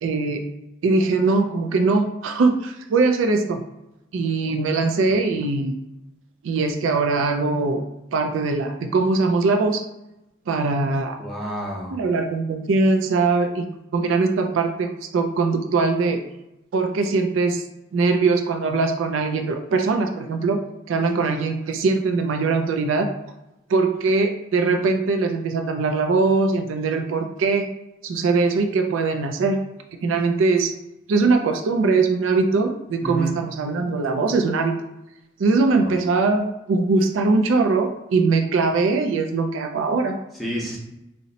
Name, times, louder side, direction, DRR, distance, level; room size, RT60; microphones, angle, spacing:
voice 1, 0.0-0.4 0.8-3.6 4.1-5.7 6.4-7.8 8.1-9.8 10.5-11.2 11.9-13.7 13.9-16.2 16.7-17.6 17.9-20.6 20.9-23.1 23.7-27.7 28.0-29.6 30.0-30.7 31.1-34.8 35.4-40.1, right 3 dB, 75° right, 6 dB, 0.3 m, -21 dB
voice 2, 11.2-12.0 33.0-33.4 35.6-36.0 40.3-40.8, right 1 dB, ahead, -5 dB, 0.6 m, -30 dB
2.7 x 2.0 x 3.9 m, 0.90 s
head